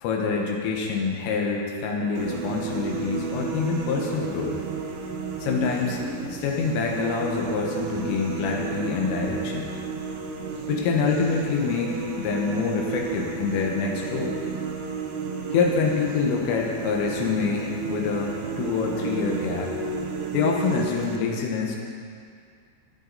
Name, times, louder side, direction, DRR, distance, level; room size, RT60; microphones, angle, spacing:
voice 1, 0.0-4.6 5.4-6.0 6.3-9.7 10.7-14.4 15.5-19.7 20.3-21.8, left 5 dB, 80° left, 0 dB, 3.8 m, -26 dB
sound 1, 2.2-21.2, right 5 dB, 85° right, 3.8 m, -32 dB
16.5 x 11.0 x 4.1 m, 2.2 s
omnidirectional pair, 5.8 m